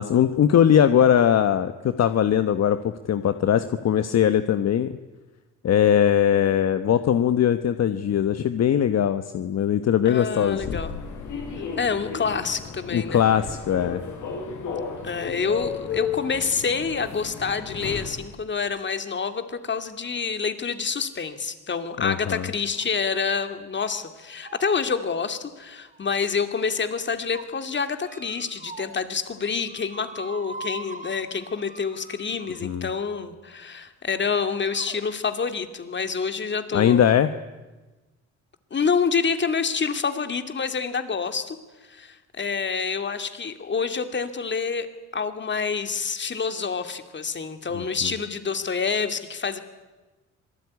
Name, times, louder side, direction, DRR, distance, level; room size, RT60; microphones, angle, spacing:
voice 1, 0.0-5.0 5.6-10.8 12.9-14.0 22.0-22.5 32.6-32.9 36.7-37.3 47.7-47.8, left 9 dB, 60° left, 10 dB, 1.2 m, -20 dB
voice 2, 10.1-10.9 11.8-13.2 15.0-37.1 38.7-41.6 41.9-44.9 45.1-49.6, left 5 dB, 40° left, 9 dB, 2.6 m, -27 dB
Human voice / Subway metro underground, 10.3-18.2, left 6 dB, 75° left, 7.6 m, -34 dB
sound 1, 22.6-22.8 23.2-23.6 23.8-24.1 24.4-26.3 26.9-27.4 28.0-29.0 29.3-32.9 33.9-34.0 34.7-35.0, right 3 dB, 25° right, 3.0 m, -43 dB
26.5 x 19.0 x 9.8 m, 1.2 s
cardioid pair, 90°, 30 cm